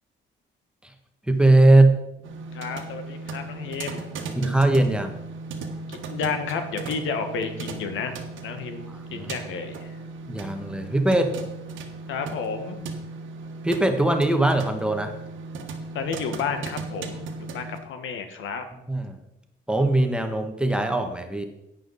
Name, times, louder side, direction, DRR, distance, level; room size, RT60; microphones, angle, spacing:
voice 1, 1.3-1.9 4.3-5.2 8.9-9.3 10.3-11.3 13.6-15.1 18.9-19.2 19.7-21.4, right 2 dB, 5° right, 5 dB, 1.3 m, -20 dB
sound 1, 2.2-17.8, right 3 dB, 75° right, 1.5 m, -37 dB
voice 2, 2.5-4.1 5.9-8.2 8.4-9.9 12.1-12.8 15.9-18.6, left 5 dB, 80° left, 7 dB, 1.4 m, -31 dB
10.5 x 8.9 x 4.0 m, 0.88 s
cardioid pair, 90°, 20 cm